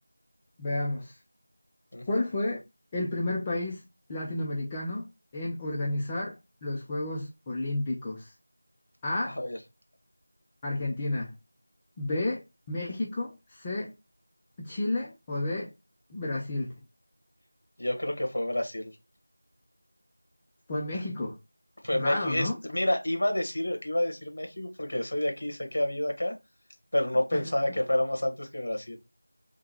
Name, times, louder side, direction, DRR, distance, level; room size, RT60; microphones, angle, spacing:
voice 1, 0.6-1.2 2.1-2.6 2.9-3.8 4.1-8.3 9.0-9.4 10.6-11.3 12.0-13.9 14.6-15.7 16.1-16.7 20.7-21.4 21.9-22.6 27.3-27.5, left 2 dB, 10° left, 0.4 m, -31 dB
voice 2, 9.2-9.6 17.8-18.9 21.8-26.3 26.9-29.0, left 1 dB, 55° left, 1.5 m, -29 dB
3.6 x 3.3 x 2.9 m
figure-of-eight pair, 175°, 0 cm